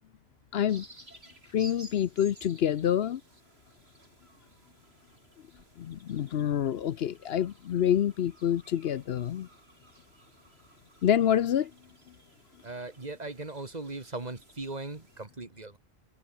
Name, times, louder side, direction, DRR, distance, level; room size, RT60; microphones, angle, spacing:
voice 1, 0.5-0.8 1.5-3.2 5.8-9.5 11.0-11.7, left 10 dB, 70° left, 0.9 m, -27 dB
sound 1, 0.7-15.3, right 1 dB, 70° right, 8.4 m, -56 dB
voice 2, 12.6-15.8, right 2 dB, 40° right, 2.1 m, -39 dB
omnidirectional pair, 1.1 m